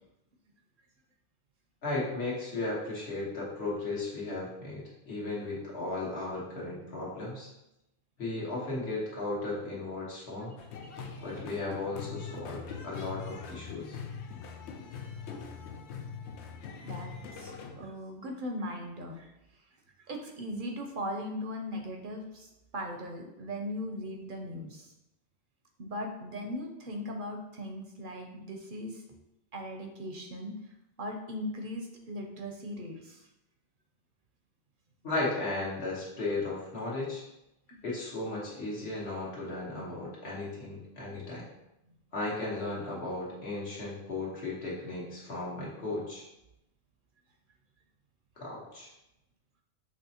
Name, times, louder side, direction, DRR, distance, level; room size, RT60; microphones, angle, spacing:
voice 1, 1.8-7.5 8.2-10.6 11.2-14.0 35.0-37.2 37.8-41.5 42.1-46.2 48.4-48.9, left 2 dB, 70° left, -5 dB, 1.6 m, -35 dB
sound 1, 10.6-17.8, left 5 dB, 90° left, 0.9 m, -42 dB
voice 2, 16.8-19.7 20.1-24.9 25.8-29.0 29.5-33.3, equal, 55° right, 3 dB, 0.7 m, -39 dB
6.0 x 3.2 x 2.8 m, 0.89 s
omnidirectional pair, 1.1 m